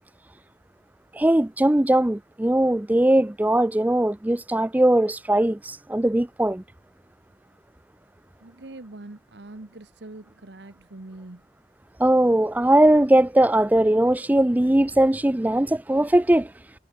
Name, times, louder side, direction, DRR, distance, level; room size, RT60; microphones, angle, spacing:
voice 1, 1.1-6.6 12.0-16.5, right 1 dB, 10° right, 0.4 m, -20 dB
voice 2, 8.4-11.5, right 2 dB, 75° right, 1.2 m, -43 dB
head